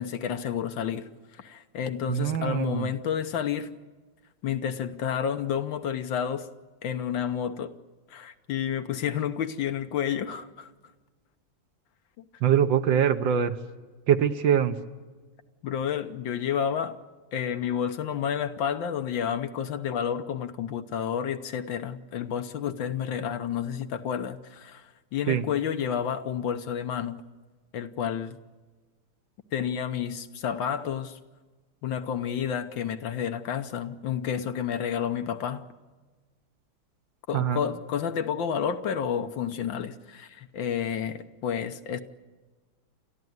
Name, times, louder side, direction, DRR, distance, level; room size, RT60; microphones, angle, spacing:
voice 1, 0.0-3.7 4.4-6.5 6.8-7.7 8.1-10.7 15.6-17.0 17.3-27.2 27.7-28.4 29.5-31.2 31.8-35.6 37.3-42.0, left 8 dB, 65° left, 1.6 m, -30 dB
voice 2, 2.1-2.9 12.4-13.6 14.1-14.8 25.3-25.4 37.3-37.6, right 9 dB, 65° right, 1.6 m, -23 dB
29.5 x 14.0 x 9.4 m
omnidirectional pair, 2.3 m